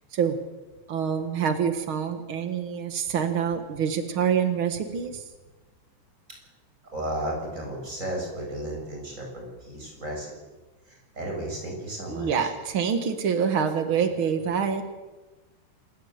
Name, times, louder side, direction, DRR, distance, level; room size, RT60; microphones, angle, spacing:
voice 1, 0.9-5.2 12.1-14.8, right 7 dB, 80° right, 7 dB, 1.1 m, -26 dB
voice 2, 6.9-10.3 10.8-12.5, right 1 dB, 15° right, 0 dB, 8.0 m, -34 dB
28.0 x 16.5 x 8.1 m, 1.2 s
omnidirectional pair, 4.9 m